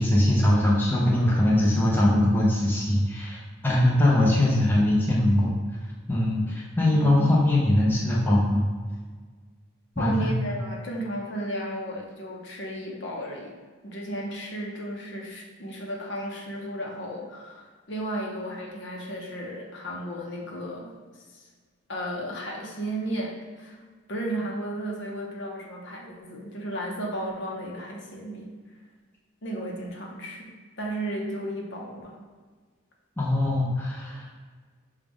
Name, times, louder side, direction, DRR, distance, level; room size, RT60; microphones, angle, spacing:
voice 1, 0.0-3.4 3.6-5.5 6.1-8.7 10.0-10.3 33.2-34.3, left 1 dB, 10° left, -5 dB, 0.6 m, -21 dB
voice 2, 6.9-7.3 10.0-13.6 13.8-21.5 21.9-23.8 24.1-28.5 29.4-30.5 30.8-32.2, right 1 dB, 60° left, -1 dB, 0.8 m, -34 dB
6.3 x 2.4 x 3.5 m, 1.5 s
head